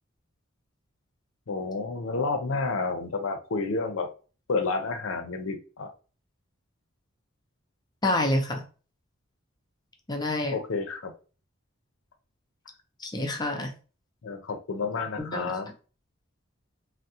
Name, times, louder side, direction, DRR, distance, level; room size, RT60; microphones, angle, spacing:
voice 1, 1.5-4.1 4.5-5.9 10.5-11.1 14.2-15.7, left 4 dB, 75° left, 0.5 m, -30 dB
voice 2, 8.0-8.6 10.1-10.6 13.0-13.7 15.2-15.5, left 1 dB, 20° left, 0.5 m, -27 dB
3.6 x 2.1 x 2.7 m
head